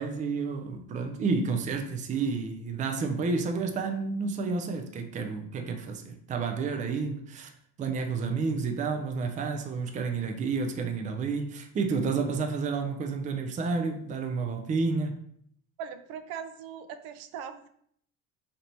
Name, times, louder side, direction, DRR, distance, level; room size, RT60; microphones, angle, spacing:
voice 1, 0.0-7.5 7.8-15.2, right 4 dB, 20° right, 0.4 m, -30 dB
voice 2, 15.8-17.7, right 8 dB, 80° right, 0.5 m, -40 dB
3.3 x 2.9 x 3.9 m
cardioid pair, 130°, 37 cm